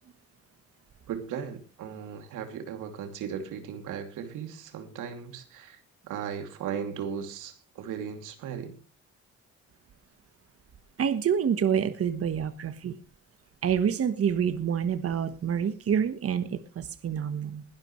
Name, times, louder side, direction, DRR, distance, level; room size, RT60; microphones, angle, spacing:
voice 1, 1.1-8.8, right 8 dB, 90° right, 2.8 m, -37 dB
voice 2, 11.0-13.0 13.6-17.6, right 8 dB, 50° right, 1.3 m, -27 dB
21.0 x 12.0 x 3.2 m
cardioid pair, 90°, 30 cm